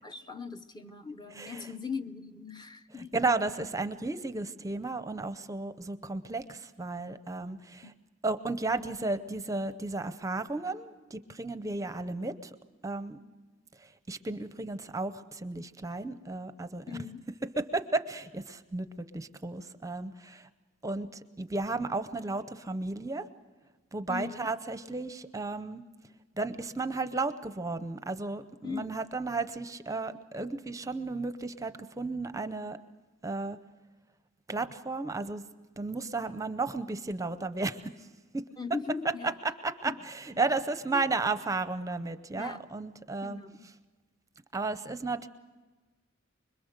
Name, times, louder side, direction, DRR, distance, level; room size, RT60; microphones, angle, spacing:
voice 1, 0.0-3.1 7.8-8.0 16.9-17.3 24.1-24.5 28.6-29.0 38.6-39.3 39.9-40.0 40.9-41.1 42.3-42.7 43.2-43.7, left 5 dB, 20° left, 0.7 m, -39 dB
voice 2, 1.3-1.7 3.0-7.9 8.2-12.6 12.8-13.2 13.8-17.0 17.6-20.5 20.8-23.3 23.9-25.8 26.4-32.8 33.2-33.6 34.5-35.4 35.8-38.1 38.3-38.4 39.2-43.4 44.5-45.3, right 3 dB, 15° right, 0.6 m, -34 dB
25.5 x 22.0 x 6.6 m
head